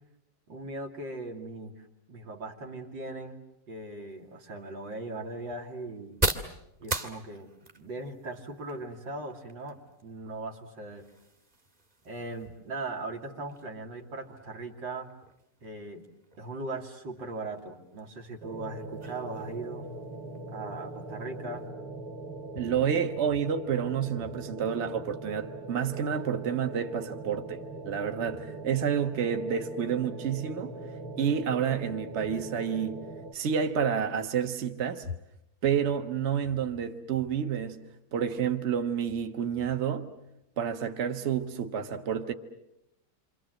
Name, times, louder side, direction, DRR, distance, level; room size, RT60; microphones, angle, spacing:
voice 1, 0.5-3.4 3.7-6.2 6.8-11.1 12.0-15.1 15.6-16.0 16.4-19.8 20.5-21.7, right 2 dB, 90° right, 3.3 m, -39 dB
sound 1, 4.1-21.7, right 1 dB, 20° right, 1.8 m, -41 dB
sound 2, 18.4-33.3, right 2 dB, 60° right, 1.9 m, -41 dB
voice 2, 22.5-30.7 31.2-33.0 33.3-35.1 35.6-37.8 38.1-40.1 40.6-42.3, right 7 dB, 40° right, 1.5 m, -29 dB
28.5 x 25.5 x 7.8 m
omnidirectional pair, 1.9 m